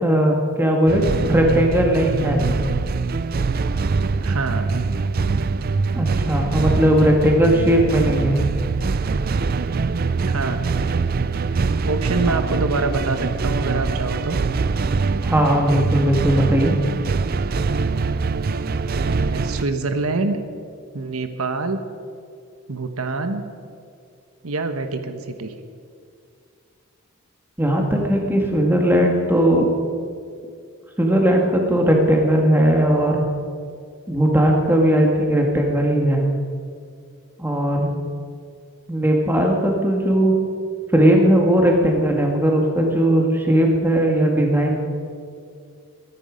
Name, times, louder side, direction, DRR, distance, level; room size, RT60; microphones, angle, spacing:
voice 1, 0.0-2.4 6.0-8.4 15.2-16.7 27.6-29.7 31.0-33.2 34.1-36.3 37.4-37.9 38.9-40.3 40.9-44.8, right 1 dB, 10° right, 0 dB, 1.8 m, -18 dB
sound 1, 0.9-19.6, right 4 dB, 45° right, 0.4 m, -23 dB
voice 2, 4.2-4.7 10.3-10.7 11.8-14.4 18.9-20.4 20.9-21.8 22.7-23.4 24.4-25.6, right 3 dB, 80° right, 8 dB, 1.0 m, -25 dB
21.5 x 11.0 x 5.1 m, 2.3 s
head